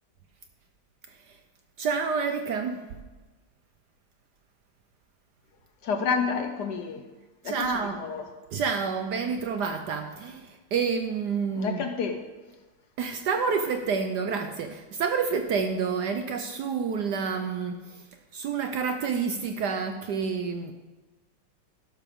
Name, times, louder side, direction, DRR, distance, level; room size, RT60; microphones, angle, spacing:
voice 1, 1.8-2.8 7.4-8.0 8.5-11.8 13.0-18.1 18.3-20.7, right 5 dB, 65° right, 7 dB, 1.1 m, -29 dB
voice 2, 5.8-7.0 7.4-8.3 11.5-12.2, left 5 dB, 65° left, 6 dB, 1.1 m, -29 dB
12.0 x 11.5 x 3.6 m, 1.2 s
omnidirectional pair, 2.3 m